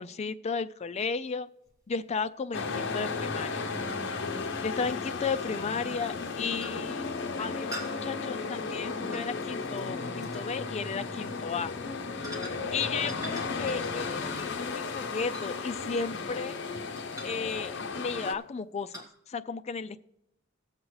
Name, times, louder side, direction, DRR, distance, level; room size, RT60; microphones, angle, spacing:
voice 1, 0.0-1.5 1.9-3.7 4.6-7.1 7.4-11.7 12.2-12.4 12.7-16.6 17.2-20.0, left 5 dB, 30° left, 11 dB, 0.4 m, -34 dB
sound 1, 1.7-1.8 4.2-4.3 5.5-5.7 6.1-6.3 6.6-7.0 7.7-9.9 10.2-10.5 11.1-11.3 12.2-12.8 13.1-16.6 17.0-17.5 17.9-18.2 18.9-19.1, equal, 15° right, 2.2 m, -45 dB
sound 2, 2.5-18.3, left 4 dB, 60° left, 0.8 m, -34 dB
18.5 x 7.5 x 3.2 m, 0.84 s
head